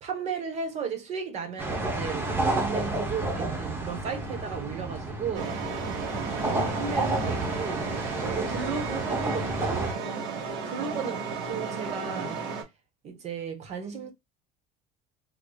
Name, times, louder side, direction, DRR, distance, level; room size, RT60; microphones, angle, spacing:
voice 1, 0.0-6.0 6.4-7.9 8.2-9.9 10.6-12.5 13.0-14.1, right 6 dB, 35° right, 1.0 m, -35 dB
sound 1, 1.6-9.9, right 2 dB, 10° right, 0.7 m, -31 dB
sound 2, 5.3-12.6, right 5 dB, 60° right, 1.9 m, -34 dB
3.3 x 3.2 x 2.3 m
cardioid pair, 175°, 21 cm